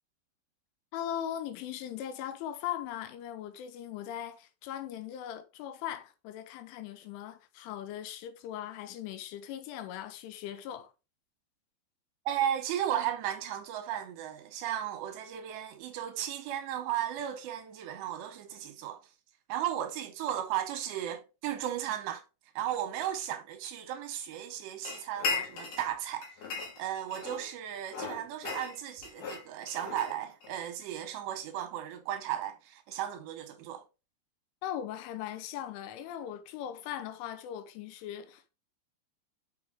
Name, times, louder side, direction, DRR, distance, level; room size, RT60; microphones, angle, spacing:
voice 1, 0.9-10.9 34.6-38.5, left 10 dB, 85° left, 3.3 m, -39 dB
voice 2, 12.3-19.0 19.5-22.2 22.6-26.3 26.8-33.8, right 11 dB, 75° right, 2.7 m, -35 dB
sound 1, 24.8-25.9 26.2-27.5 27.9-30.6, left 4 dB, 55° left, 2.8 m, -37 dB
6.5 x 6.1 x 3.5 m
omnidirectional pair, 5.5 m